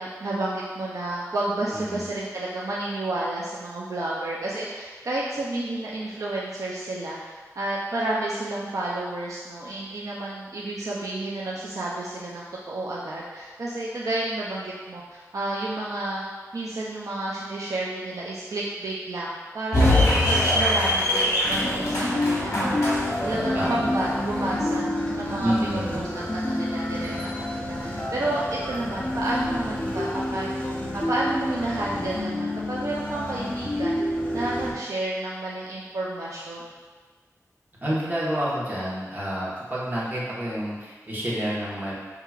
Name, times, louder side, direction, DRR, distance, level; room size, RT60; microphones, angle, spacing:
voice 1, 0.0-16.2 16.5-19.9 20.2-22.8 23.2-24.9 25.2-26.0 26.3-30.5 30.9-36.7, right 2 dB, 70° right, -6 dB, 0.5 m, -31 dB
voice 2, 1.7-2.0 23.5-23.9 25.4-26.0 37.8-41.9, equal, 30° right, -8 dB, 1.3 m, -28 dB
sound 1, 19.7-24.8, left 1 dB, 60° left, 1.3 m, -23 dB
sound 2, 21.4-34.7, left 1 dB, 25° left, 0.7 m, -29 dB
5.7 x 2.8 x 2.4 m, 1.4 s
wide cardioid pair, 85°, 6 cm